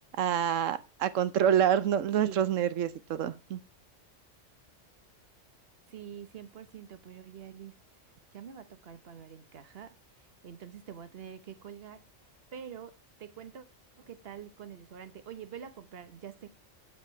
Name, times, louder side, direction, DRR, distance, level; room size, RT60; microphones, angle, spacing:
voice 1, 0.2-3.6, right 9 dB, 90° right, 1.1 m, -27 dB
voice 2, 5.9-7.7 8.3-9.9 10.4-12.0 12.5-12.9 13.2-13.6 14.0-16.5, right 8 dB, 55° right, 1.3 m, -45 dB
8.9 x 7.8 x 4.5 m
omnidirectional pair, 1.3 m